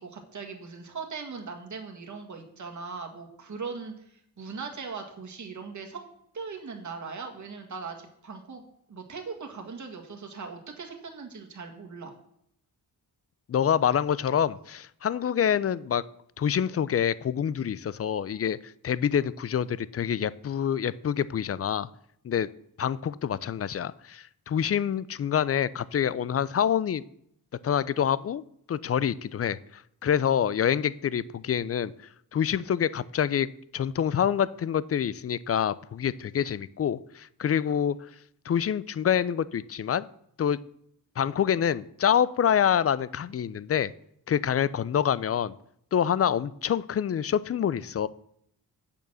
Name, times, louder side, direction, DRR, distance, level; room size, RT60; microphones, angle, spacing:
voice 1, 0.0-6.0 6.3-8.6 8.9-12.1, right 5 dB, 45° right, 2 dB, 1.8 m, -39 dB
voice 2, 13.5-16.0 16.4-21.9 22.2-22.5 22.8-27.0 27.6-28.4 28.7-31.9 32.3-33.5 33.7-38.0 38.5-40.1 40.4-40.6 41.2-43.9 44.3-45.5 45.9-48.1, left 8 dB, 40° left, 19 dB, 0.4 m, -26 dB
8.2 x 6.8 x 6.3 m, 0.72 s
wide cardioid pair, 100°, 39 cm